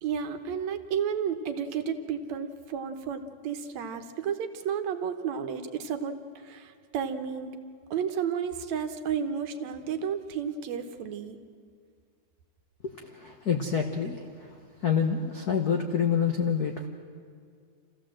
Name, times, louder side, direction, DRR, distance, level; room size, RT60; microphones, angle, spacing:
voice 1, 0.0-7.6 7.9-11.4, right 7 dB, 70° right, 8 dB, 2.2 m, -32 dB
voice 2, 12.8-14.6 14.8-16.9, left 7 dB, 80° left, 3 dB, 0.8 m, -27 dB
27.5 x 15.5 x 7.7 m, 2.1 s
omnidirectional pair, 3.4 m